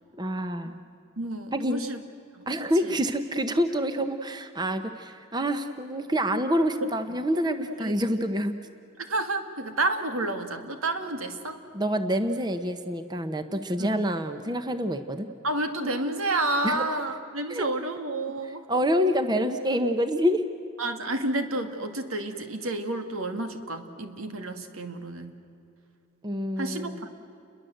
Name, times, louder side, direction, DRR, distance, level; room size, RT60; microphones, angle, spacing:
voice 1, 0.1-0.8 1.5-1.8 2.5-8.6 11.7-15.3 16.6-16.8 17.5-17.6 18.7-20.4 26.2-27.0, equal, 20° right, 8 dB, 1.0 m, -27 dB
voice 2, 1.2-2.0 2.3-2.4 2.8-2.9 7.6-8.2 9.0-11.6 13.8-14.1 15.4-18.6 20.8-25.4 26.6-27.1, right 2 dB, 85° right, 7 dB, 2.2 m, -30 dB
30.0 x 22.5 x 7.9 m, 2.7 s
head